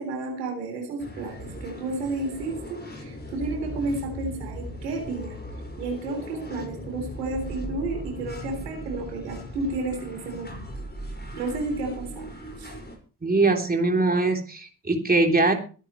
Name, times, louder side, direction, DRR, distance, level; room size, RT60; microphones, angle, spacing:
voice 1, 0.0-5.4 5.8-10.7 11.4-12.3 12.6-12.7, right 2 dB, 90° right, 3 dB, 3.7 m, -32 dB
sound 1, 1.0-13.0, equal, 20° left, 5.3 m, -38 dB
voice 2, 13.2-15.5, right 3 dB, 20° right, 3 dB, 3.4 m, -22 dB
22.5 x 9.2 x 3.1 m, 0.37 s
hypercardioid pair, 50°, 47 cm